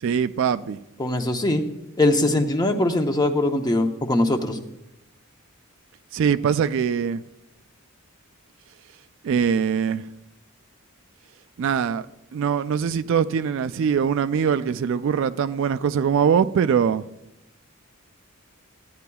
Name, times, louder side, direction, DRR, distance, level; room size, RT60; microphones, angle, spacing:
voice 1, 0.0-0.8 6.1-7.2 9.2-10.0 11.6-12.1 12.3-17.0, right 7 dB, 60° right, 0.3 m, -22 dB
voice 2, 1.0-1.6 2.0-4.6, left 1 dB, 20° left, 0.7 m, -21 dB
15.0 x 9.5 x 2.3 m
head